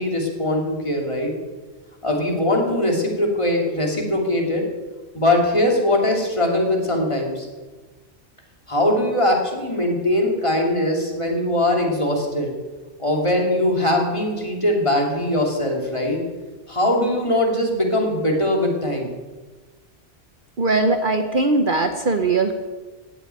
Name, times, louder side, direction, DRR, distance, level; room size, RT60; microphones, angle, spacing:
voice 1, 0.0-1.3 2.0-4.6 5.1-7.5 8.7-12.5 13.0-16.2 16.7-19.1, left 1 dB, 25° left, 0 dB, 2.8 m, -21 dB
voice 2, 20.6-22.5, right 3 dB, 50° right, 7 dB, 1.0 m, -20 dB
16.0 x 8.1 x 8.9 m, 1.3 s
omnidirectional pair, 1.2 m